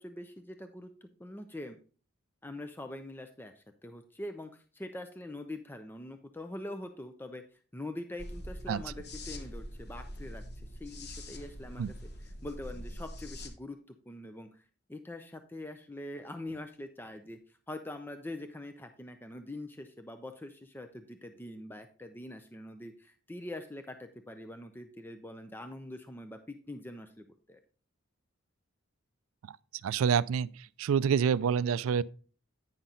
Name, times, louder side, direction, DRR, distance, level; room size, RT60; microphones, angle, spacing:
voice 1, 0.0-1.8 2.4-7.4 7.7-10.4 10.7-13.8 14.1-17.4 17.7-27.6, left 1 dB, 10° left, 0.4 m, -44 dB
sound 1, 8.2-13.5, equal, 50° left, 1.1 m, -44 dB
voice 2, 29.8-30.5 30.8-32.0, right 7 dB, 80° right, 0.3 m, -27 dB
9.2 x 5.7 x 3.8 m
head